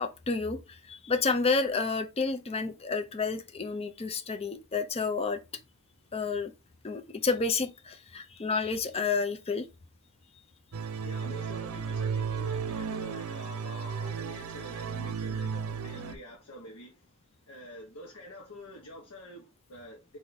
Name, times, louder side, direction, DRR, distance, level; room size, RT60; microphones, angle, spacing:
voice 1, 0.0-5.4 6.1-6.5 6.8-9.7, left 4 dB, 25° left, 0.5 m, -30 dB
sound 1, 10.7-16.1, right 6 dB, 70° right, 0.6 m, -34 dB
voice 2, 11.0-17.1 17.5-20.2, left 1 dB, 75° left, 1.0 m, -47 dB
4.4 x 2.7 x 4.0 m
head